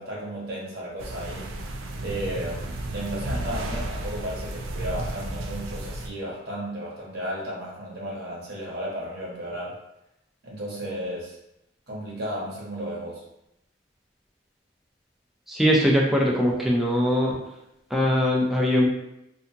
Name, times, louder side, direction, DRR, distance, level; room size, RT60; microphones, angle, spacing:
voice 1, 0.0-1.5 2.0-9.8 10.4-11.4 11.9-13.2, right 1 dB, 55° right, -5 dB, 0.9 m, -34 dB
sound 1, 1.0-6.1, right 1 dB, 75° right, 0.4 m, -33 dB
voice 2, 15.5-17.4 17.9-18.9, equal, ahead, -3 dB, 0.5 m, -21 dB
2.7 x 2.4 x 2.7 m, 0.85 s
head